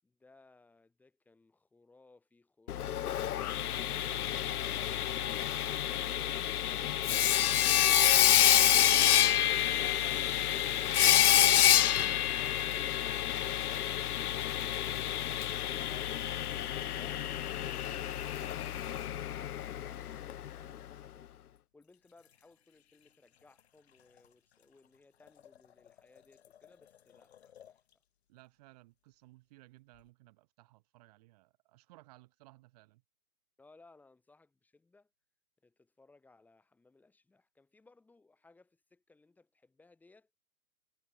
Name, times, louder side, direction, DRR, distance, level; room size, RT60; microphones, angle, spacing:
voice 1, 0.0-3.2 21.7-27.8 33.6-35.1 35.6-40.3, left 3 dB, 5° left, 7.9 m, -62 dB
Sawing, 2.7-20.5, left 11 dB, 85° left, 0.6 m, -28 dB
sound 1, 21.5-28.1 29.9-30.1, left 10 dB, 45° left, 5.7 m, -63 dB
voice 2, 28.3-33.0, right 20 dB, 25° right, 6.3 m, -60 dB
hypercardioid pair, 165°, 44 cm